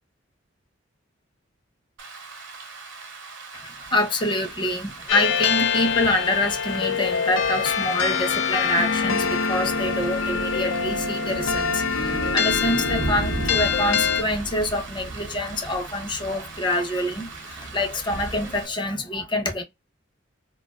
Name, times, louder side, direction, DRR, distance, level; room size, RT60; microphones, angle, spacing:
Rain, 2.0-18.7, right 4 dB, 70° right, 0.8 m, -41 dB
voice 1, 3.5-19.6, left 1 dB, 25° left, 0.6 m, -26 dB
sound 1, 4.5-18.6, right 2 dB, 30° right, 0.4 m, -37 dB
sound 2, 5.1-14.2, left 6 dB, 85° left, 0.5 m, -24 dB
2.4 x 2.2 x 2.3 m
head